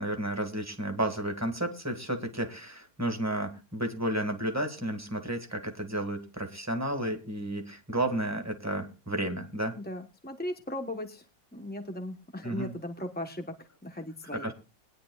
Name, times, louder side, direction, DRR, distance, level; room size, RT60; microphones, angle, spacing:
voice 1, 0.0-9.7 12.4-12.7 14.4-14.5, right 1 dB, 10° right, 4 dB, 1.7 m, -32 dB
voice 2, 9.7-11.2 11.5-14.5, left 1 dB, 10° left, 5 dB, 0.6 m, -38 dB
21.0 x 10.0 x 2.3 m, 0.30 s
omnidirectional pair, 2.0 m